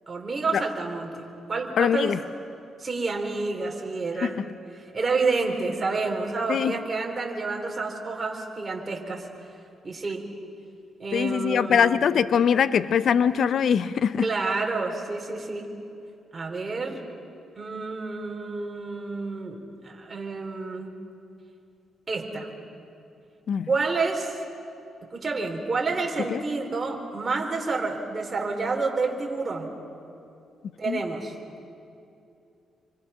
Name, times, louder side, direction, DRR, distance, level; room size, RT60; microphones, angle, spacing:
voice 1, 0.1-1.2 1.5-2.2 2.8-4.4 4.9-9.3 9.8-10.3 11.0-12.0 14.2-15.7 16.3-17.0 17.5-20.9 22.1-22.5 23.7-24.4 25.1-29.7 30.8-31.3, right 3 dB, 30° right, 1 dB, 4.3 m, -29 dB
voice 2, 1.8-2.2 4.2-4.4 6.5-6.7 11.1-14.3 23.5-23.7 26.3-26.4 30.9-31.0, left 7 dB, 65° left, 14 dB, 0.7 m, -22 dB
28.0 x 24.0 x 5.9 m, 2.6 s
cardioid pair, 85°, 0 cm